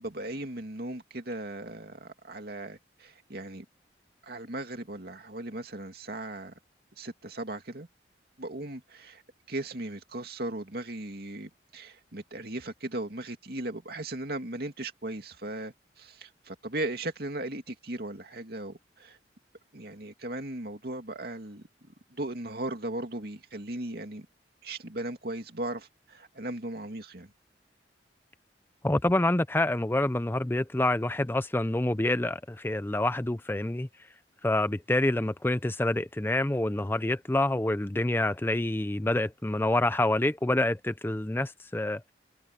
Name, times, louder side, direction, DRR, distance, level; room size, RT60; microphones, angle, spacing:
voice 1, 0.0-3.6 4.2-6.5 7.0-7.9 8.4-9.2 9.5-19.2 19.7-21.6 22.1-24.3 24.6-27.3, right 1 dB, 60° right, 2.6 m, -37 dB
voice 2, 28.8-33.9 34.4-42.0, left 1 dB, 10° left, 0.5 m, -27 dB
head